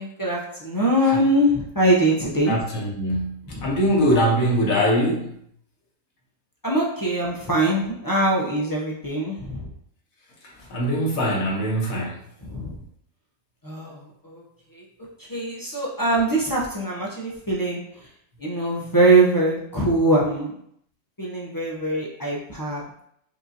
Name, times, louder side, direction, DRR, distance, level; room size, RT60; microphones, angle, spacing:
voice 1, 0.0-2.6 3.5-3.7 6.6-9.7 12.4-12.8 13.6-14.0 14.2-14.4 14.7-14.8 15.3-17.8 18.4-20.5 21.2-23.0, right 1 dB, 25° left, -4 dB, 0.4 m, -22 dB
voice 2, 2.5-5.3 10.7-12.1, equal, 85° left, -3 dB, 1.5 m, -22 dB
5.4 x 2.6 x 2.7 m, 0.71 s
omnidirectional pair, 1.4 m